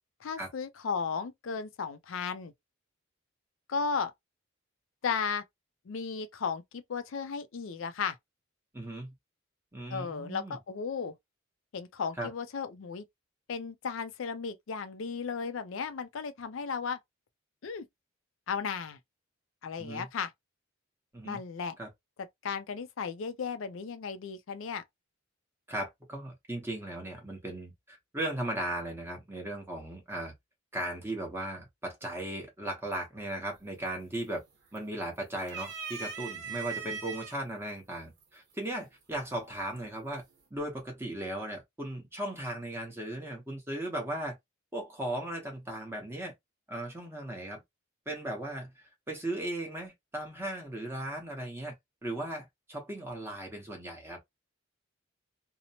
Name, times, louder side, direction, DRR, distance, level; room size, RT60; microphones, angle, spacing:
voice 1, 0.2-2.5 3.7-4.1 5.0-5.4 5.9-8.2 9.9-11.1 11.7-13.0 13.5-17.0 17.6-17.8 18.5-19.0 19.6-20.3 21.2-21.8 22.4-24.8, left 5 dB, 65° left, 0.4 m, -35 dB
voice 2, 8.7-9.1 9.7-10.6 12.2-12.3 19.8-20.1 21.1-21.4 21.8-21.9 25.7-30.3 30.7-34.4 34.7-40.2 40.5-44.4 44.7-46.3 46.7-47.6 48.1-51.7 52.0-54.2, right 1 dB, 10° right, 0.8 m, -37 dB
sound 1, 33.6-34.0 34.3-35.0 35.4-37.3 38.2-38.3 39.5-40.0, right 6 dB, 55° right, 1.0 m, -39 dB
2.8 x 2.0 x 2.7 m
head